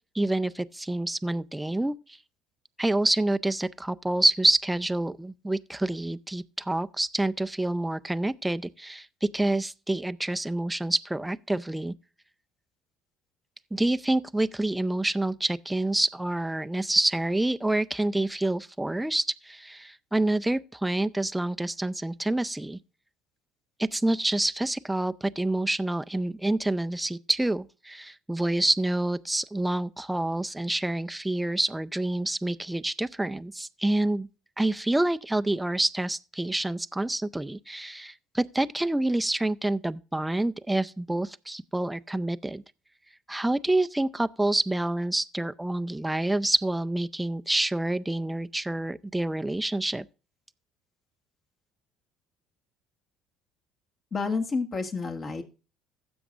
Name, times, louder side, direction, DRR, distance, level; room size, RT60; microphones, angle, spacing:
voice 1, 0.1-2.2 2.8-11.9 13.7-22.8 23.8-34.3 34.6-42.6 43.3-50.1, right 1 dB, 10° right, 0.5 m, -27 dB
voice 2, 54.1-55.4, left 4 dB, 40° left, 1.9 m, -29 dB
16.0 x 7.1 x 2.5 m
supercardioid pair, 80°, 0 cm